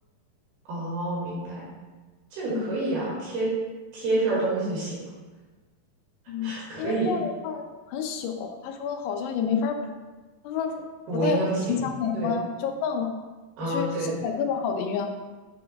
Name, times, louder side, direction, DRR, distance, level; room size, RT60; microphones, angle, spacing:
voice 1, 0.7-1.7 2.3-3.5 3.9-5.0 6.4-7.1 11.1-11.8 12.1-12.3 13.6-14.1, right 2 dB, 70° right, -7 dB, 3.9 m, -28 dB
voice 2, 6.3-9.9 10.4-10.8 11.1-13.1 13.6-15.1, left 6 dB, 90° left, 4 dB, 2.8 m, -29 dB
9.0 x 6.9 x 2.4 m, 1.3 s
omnidirectional pair, 4.7 m